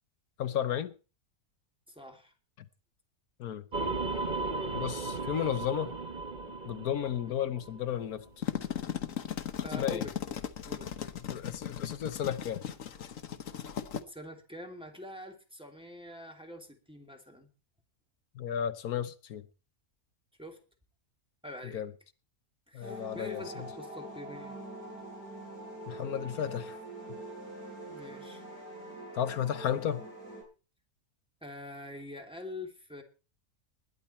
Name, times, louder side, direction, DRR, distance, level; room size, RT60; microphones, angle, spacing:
voice 1, 0.4-0.9 2.6-2.7 3.4-3.7 4.7-5.9 6.7-8.3 9.8-10.0 11.3-12.6 18.3-19.4 21.7-21.9 22.7-23.4 25.9-26.8 29.1-30.0, left 9 dB, 80° left, 1.4 m, -33 dB
voice 2, 1.9-2.3 9.6-10.1 10.6-10.9 14.1-17.5 20.4-20.6 21.4-21.8 22.7-24.6 27.9-28.4 31.4-33.0, left 1 dB, 5° right, 2.7 m, -45 dB
sound 1, 3.7-8.1, right 3 dB, 35° right, 1.4 m, -36 dB
sound 2, 8.2-14.0, left 9 dB, 65° left, 1.4 m, -37 dB
sound 3, 22.8-30.4, right 1 dB, 75° right, 8.3 m, -44 dB
20.5 x 10.5 x 4.4 m
omnidirectional pair, 1.6 m